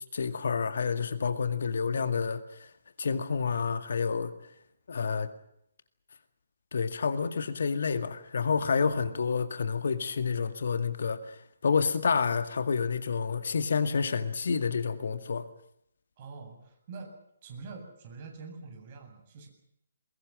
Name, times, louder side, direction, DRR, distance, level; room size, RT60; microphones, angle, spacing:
voice 1, 0.1-2.7 3.0-4.3 4.9-5.3 6.7-15.5, left 5 dB, 55° left, 11 dB, 2.0 m, -29 dB
voice 2, 16.2-17.1 17.4-19.5, right 4 dB, 35° right, 4 dB, 8.0 m, -45 dB
23.5 x 21.5 x 7.6 m, 0.74 s
figure-of-eight pair, 135°, 0 cm